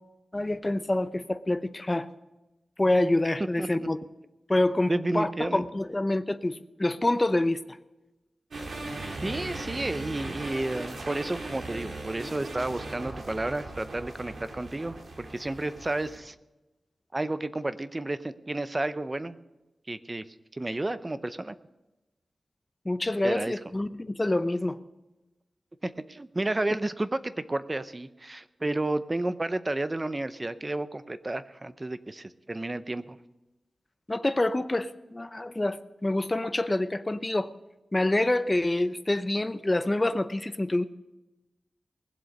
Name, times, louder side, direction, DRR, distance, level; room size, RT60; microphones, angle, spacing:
voice 1, 0.3-2.1 2.8-4.0 4.5-7.6 22.8-24.7 34.1-37.5 37.9-40.8, left 1 dB, 20° left, 11 dB, 0.7 m, -27 dB
voice 2, 3.6-3.9 4.9-5.6 9.2-16.3 17.1-19.4 19.9-20.2 20.5-21.5 23.2-23.5 25.8-33.2, right 2 dB, 25° right, 13 dB, 0.6 m, -31 dB
sound 1, 8.5-16.2, right 2 dB, 75° right, 2.7 m, -38 dB
20.5 x 7.7 x 5.3 m, 1.0 s
wide cardioid pair, 115°, 0 cm